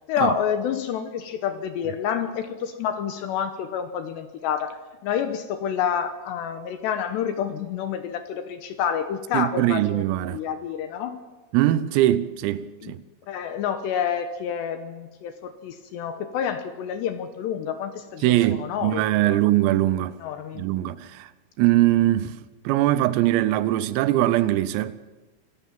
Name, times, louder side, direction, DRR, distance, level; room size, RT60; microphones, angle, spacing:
voice 1, 0.1-10.0 10.3-11.2 12.8-12.9 13.3-19.4 20.2-20.6, left 8 dB, 75° left, 2.7 m, -28 dB
voice 2, 9.3-10.4 11.5-13.0 18.2-20.2 20.6-21.3 21.6-22.4 22.7-25.0, right 15 dB, 90° right, 3.6 m, -21 dB
25.5 x 17.0 x 7.2 m
omnidirectional pair, 6.0 m